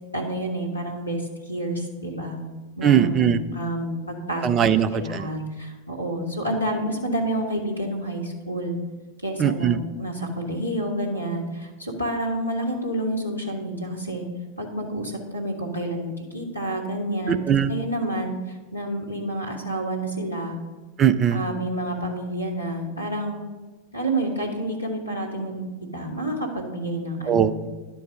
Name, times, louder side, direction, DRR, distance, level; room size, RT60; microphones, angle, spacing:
voice 1, 0.1-2.4 2.8-4.5 4.9-8.8 9.2-14.2 14.6-17.4 17.7-20.6 21.3-23.4 23.9-25.6 25.9-27.5, right 1 dB, 90° left, 0 dB, 1.4 m, -29 dB
voice 2, 2.8-3.4 4.4-5.3 9.4-9.8 17.5-17.7 21.0-21.4 27.3-27.7, right 9 dB, 25° right, 12 dB, 0.4 m, -20 dB
10.5 x 4.6 x 6.3 m, 1.2 s
figure-of-eight pair, 90°, 0 cm